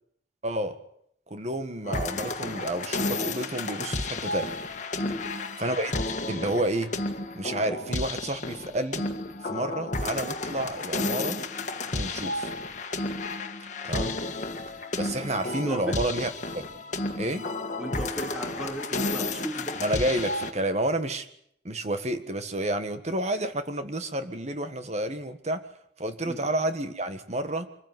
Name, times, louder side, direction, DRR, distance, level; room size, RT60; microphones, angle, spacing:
voice 1, 0.4-0.8 1.3-4.5 5.6-6.9 7.4-9.1 9.4-11.4 11.9-12.5 13.8-14.2 14.9-16.7 17.2-17.5 19.8-21.3 21.7-25.7 26.0-27.7, right 1 dB, 40° right, 9 dB, 1.7 m, -30 dB
sound 1, 1.9-20.5, left 2 dB, 40° left, 1.8 m, -32 dB
voice 2, 5.0-5.3 15.5-16.0 17.8-19.8 26.2-26.4, equal, 5° right, 2 dB, 3.4 m, -36 dB
25.5 x 15.5 x 9.4 m, 0.73 s
head